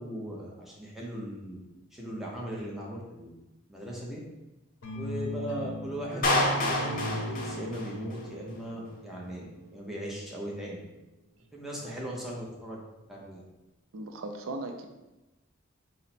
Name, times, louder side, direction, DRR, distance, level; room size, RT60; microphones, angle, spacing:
voice 1, 0.0-1.6 1.9-3.3 3.7-4.2 4.9-9.4 9.7-10.8 11.5-12.8 13.1-13.4, equal, ahead, -4 dB, 0.6 m, -38 dB
sound 1, 4.8-9.9, equal, 85° left, 0.7 m, -38 dB
Clapping, 6.2-8.3, left 1 dB, 45° left, 0.6 m, -28 dB
voice 2, 13.9-14.9, right 2 dB, 80° right, 4 dB, 0.4 m, -37 dB
4.0 x 2.1 x 4.1 m, 1.0 s
head